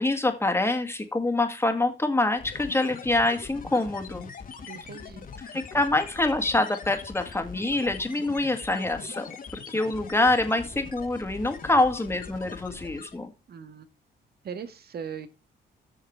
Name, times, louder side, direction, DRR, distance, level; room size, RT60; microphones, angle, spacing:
voice 1, 0.0-4.3 5.5-9.3 9.7-13.3, left 2 dB, 10° left, 6 dB, 1.9 m, -25 dB
sound 1, 2.4-13.3, left 6 dB, 45° left, 1.8 m, -42 dB
voice 2, 4.7-5.3 13.5-13.8 14.4-15.3, right 7 dB, 50° right, 10 dB, 1.6 m, -39 dB
7.7 x 6.5 x 5.4 m, 0.31 s
cardioid pair, 90°, 20 cm